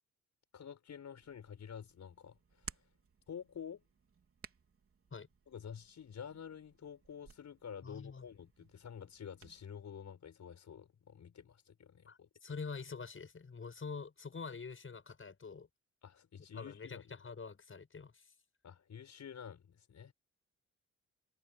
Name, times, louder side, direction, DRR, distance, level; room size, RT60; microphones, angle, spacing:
voice 1, 0.5-2.9 3.3-3.8 5.5-12.3 16.0-17.0 18.6-20.1, left 7 dB, 55° left, 5.5 m, -49 dB
Hands, 1.2-9.6, right 5 dB, 40° right, 4.0 m, -57 dB
voice 2, 7.8-8.3 12.1-15.7 16.5-18.3, left 5 dB, 40° left, 7.2 m, -46 dB
supercardioid pair, 60°, 33 cm